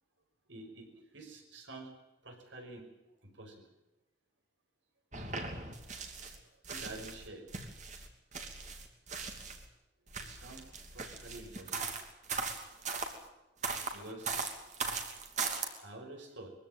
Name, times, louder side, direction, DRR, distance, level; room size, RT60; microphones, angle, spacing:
voice 1, 0.5-1.9 2.2-2.9 3.2-3.6 6.2-7.5 10.2-10.6 10.9-11.9 13.3-13.4 13.9-14.4 15.8-16.5, right 2 dB, 75° right, 4 dB, 5.6 m, -49 dB
sound 1, 5.1-6.4 6.6-9.6 10.1-13.1 13.6-15.7, right 4 dB, 35° right, 2.9 m, -39 dB
22.5 x 16.0 x 9.3 m, 0.97 s
head